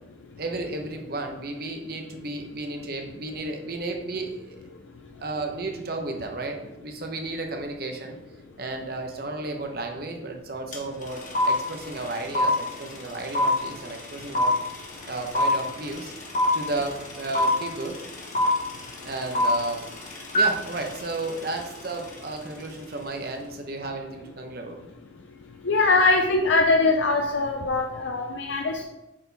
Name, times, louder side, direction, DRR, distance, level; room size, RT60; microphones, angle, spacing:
voice 1, 0.4-4.6 5.2-8.2 8.6-14.5 15.0-16.1 16.5-18.0 19.0-19.9 20.3-24.8, right 2 dB, 55° right, 3 dB, 1.0 m, -33 dB
sound 1, 10.7-10.8 11.0-22.2, left 1 dB, 40° left, 1.4 m, -26 dB
voice 2, 25.7-28.8, left 3 dB, 80° left, 1 dB, 0.6 m, -22 dB
8.6 x 4.3 x 3.5 m, 0.94 s
head